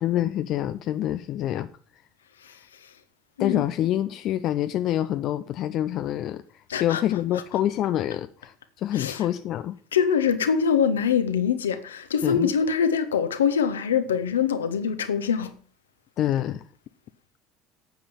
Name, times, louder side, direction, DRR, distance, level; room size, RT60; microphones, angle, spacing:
voice 1, 0.0-1.7 3.4-9.8 12.2-12.5 16.2-16.6, left 12 dB, 50° left, 0.6 m, -26 dB
voice 2, 6.7-7.0 8.9-9.3 9.9-15.5, left 7 dB, 75° left, 1.2 m, -24 dB
9.3 x 8.6 x 7.2 m
figure-of-eight pair, 65°, 0 cm